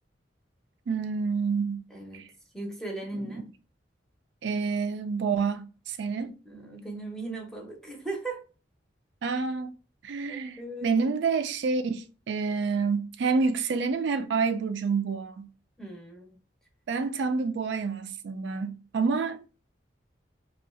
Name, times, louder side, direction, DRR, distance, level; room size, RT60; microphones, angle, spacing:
voice 1, 0.9-1.8 2.1-2.3 3.2-3.4 4.4-6.3 9.2-9.7 10.0-15.5 16.9-19.4, right 5 dB, 70° right, 0.3 m, -28 dB
voice 2, 1.9-2.2 2.5-3.5 6.5-8.4 10.3-10.9 15.8-16.3, right 2 dB, 5° left, 0.6 m, -37 dB
2.6 x 2.3 x 4.1 m
head